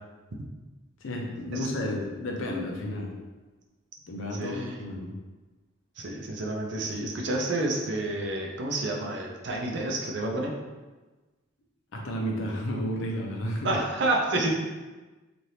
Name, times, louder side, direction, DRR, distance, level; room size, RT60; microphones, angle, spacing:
voice 1, 1.0-3.1 4.1-5.1 11.9-13.7, equal, 75° left, 0 dB, 0.6 m, -32 dB
voice 2, 4.4-4.7 6.0-10.5 13.6-14.5, right 2 dB, 60° right, 0 dB, 0.5 m, -29 dB
3.2 x 2.5 x 2.7 m, 1.2 s
head